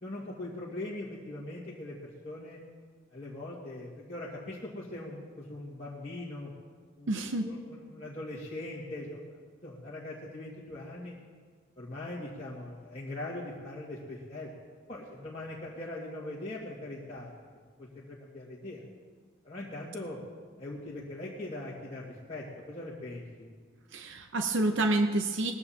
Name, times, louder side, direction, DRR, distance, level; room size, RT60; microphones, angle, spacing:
voice 1, 0.0-2.6 3.1-6.5 7.0-9.2 9.6-11.1 11.8-14.5 14.9-18.8 19.4-20.2 20.6-23.5, left 1 dB, 30° left, -8 dB, 1.9 m, -41 dB
voice 2, 7.1-7.5 23.9-25.5, right 2 dB, 65° right, 6 dB, 0.7 m, -28 dB
20.0 x 15.0 x 2.8 m, 1.6 s
head